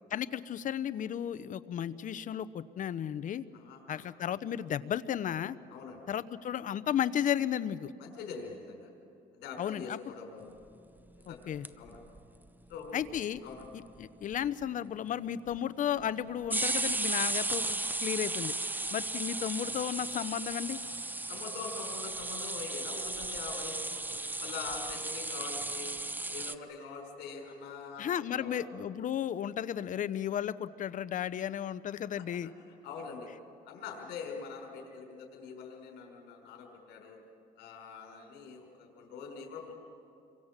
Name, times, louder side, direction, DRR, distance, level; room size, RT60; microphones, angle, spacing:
voice 1, 0.1-3.5 3.9-5.6 6.1-7.9 9.6-10.0 11.3-11.7 12.9-13.4 14.0-18.5 18.9-20.8 28.0-32.5, left 9 dB, 50° left, 15 dB, 0.9 m, -34 dB
voice 2, 3.5-4.1 5.7-6.0 8.0-8.9 9.4-10.5 11.3-11.5 11.8-12.0 12.7-13.0 13.4-13.7 21.3-24.0 24.4-25.9 26.3-28.7 32.1-32.5 32.8-33.3 33.7-37.2 37.6-39.7, left 5 dB, 80° left, 0 dB, 5.3 m, -44 dB
sound 1, 11.3-12.2 12.5-12.6 12.7-12.8 13.0-13.6 14.0-14.1 14.3-14.6 15.5-15.6 16.4-26.5, right 2 dB, 10° right, 0.8 m, -35 dB
28.0 x 24.0 x 7.5 m, 2.6 s
cardioid pair, 110°, 17 cm